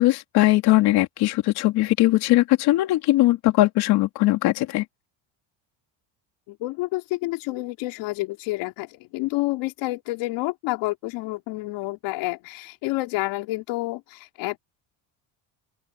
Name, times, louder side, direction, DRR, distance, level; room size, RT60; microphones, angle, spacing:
voice 1, 0.0-4.8, left 17 dB, 55° left, 3.1 m, -20 dB
voice 2, 6.5-14.6, left 20 dB, 75° left, 3.5 m, -29 dB
open air
cardioid pair, 180°, 44 cm